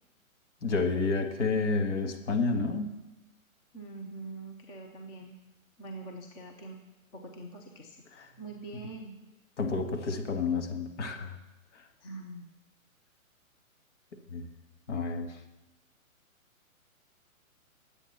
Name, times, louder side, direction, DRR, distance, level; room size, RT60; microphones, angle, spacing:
voice 1, 0.6-2.9 8.2-8.3 9.6-11.4 14.3-14.5 14.9-15.3, left 4 dB, 55° left, 4 dB, 2.1 m, -30 dB
voice 2, 3.7-5.4 5.8-6.8 7.1-8.0 8.4-9.1 12.0-12.5, right 2 dB, 10° left, 2 dB, 0.6 m, -43 dB
21.0 x 8.2 x 4.3 m, 1.0 s
hypercardioid pair, 140°, 42 cm